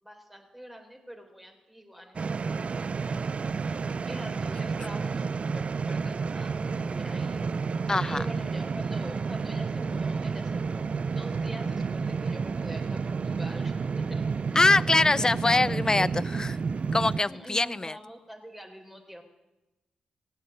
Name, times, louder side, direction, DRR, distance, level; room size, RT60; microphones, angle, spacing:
voice 1, 0.0-2.6 2.9-7.4 7.7-14.2 15.1-16.1 17.2-19.2, equal, 5° right, 3 dB, 3.7 m, -44 dB
sound 1, 2.1-17.2, right 5 dB, 50° right, 0.4 m, -30 dB
voice 2, 7.9-8.2 14.6-16.5 16.9-18.0, left 2 dB, 25° left, 21 dB, 0.5 m, -23 dB
16.5 x 8.5 x 8.5 m, 1.0 s
supercardioid pair, 45°, 3 cm